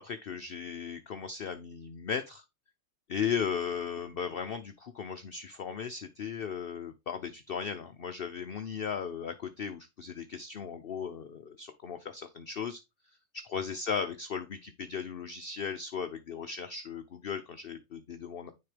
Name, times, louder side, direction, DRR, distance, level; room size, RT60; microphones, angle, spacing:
voice 1, 0.0-2.4 3.1-12.8 13.3-18.5, left 6 dB, 60° left, 8 dB, 0.6 m, -36 dB
9.7 x 4.3 x 3.3 m, 0.24 s
omnidirectional pair, 1.7 m